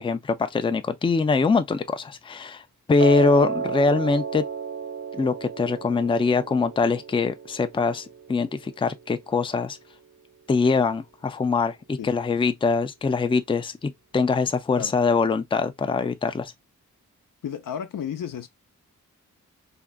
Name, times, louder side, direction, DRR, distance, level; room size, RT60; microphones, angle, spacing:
voice 1, 0.0-2.6 2.9-4.5 5.1-9.8 10.5-16.5, left 4 dB, 15° left, 0.4 m, -23 dB
Piano, 3.0-9.1, right 6 dB, 50° right, 0.8 m, -33 dB
voice 2, 17.4-18.5, left 8 dB, 80° left, 0.6 m, -32 dB
3.6 x 2.1 x 2.2 m
wide cardioid pair, 75°, 32 cm